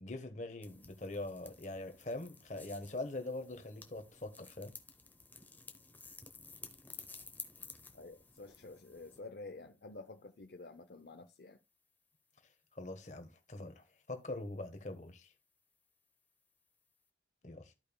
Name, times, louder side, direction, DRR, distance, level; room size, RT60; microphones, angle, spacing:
voice 1, 0.0-4.7 12.7-15.3 17.4-17.7, left 2 dB, 40° left, 1.2 m, -43 dB
sound 1, 0.6-9.2, left 4 dB, 10° left, 0.8 m, -53 dB
voice 2, 7.9-11.6, left 3 dB, 60° left, 0.6 m, -50 dB
14.0 x 5.3 x 2.2 m
head